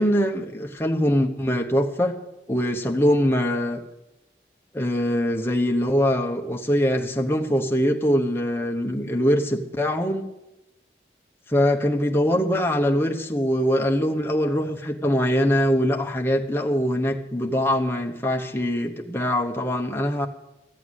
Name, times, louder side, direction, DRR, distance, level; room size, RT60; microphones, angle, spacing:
voice 1, 0.0-2.2 2.5-3.8 4.7-10.3 11.5-20.3, equal, 15° left, 1 dB, 0.9 m, -23 dB
14.0 x 8.0 x 8.0 m, 0.96 s
head